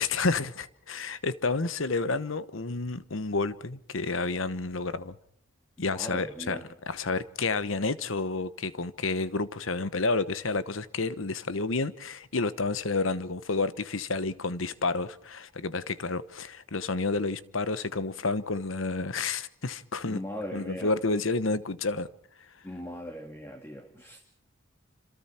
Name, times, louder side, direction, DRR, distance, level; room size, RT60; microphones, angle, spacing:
voice 1, 0.0-5.2 5.8-6.6 6.9-20.2 20.5-22.1, left 3 dB, 85° left, 1.1 m, -30 dB
voice 2, 5.9-6.7 20.0-21.2 22.6-24.2, equal, 10° left, 1.9 m, -39 dB
27.5 x 26.5 x 4.4 m
head